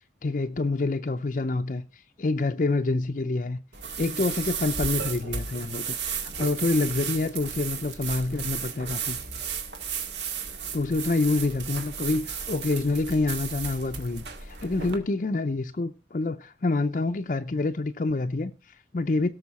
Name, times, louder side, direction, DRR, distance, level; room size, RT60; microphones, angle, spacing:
voice 1, 0.2-3.6 4.0-9.2 10.7-19.3, left 3 dB, 45° left, 0.5 m, -27 dB
sound 1, 3.7-15.0, right 6 dB, 80° right, 1.9 m, -34 dB
17.5 x 6.5 x 4.1 m
head